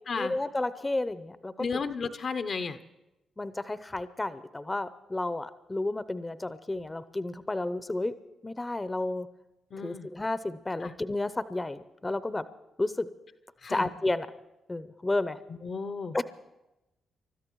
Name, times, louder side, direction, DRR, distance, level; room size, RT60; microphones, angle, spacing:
voice 1, 0.1-1.8 3.4-8.1 8.4-9.3 9.8-12.5 12.8-13.1 13.7-14.3 14.7-15.4 16.1-16.2, left 2 dB, 25° left, 15 dB, 0.7 m, -32 dB
voice 2, 1.6-2.8 9.7-10.1 10.8-10.9 13.6-13.9 15.6-16.2, left 5 dB, 55° left, 10 dB, 0.8 m, -33 dB
29.5 x 13.5 x 3.1 m, 0.97 s
hypercardioid pair, 40°, 0 cm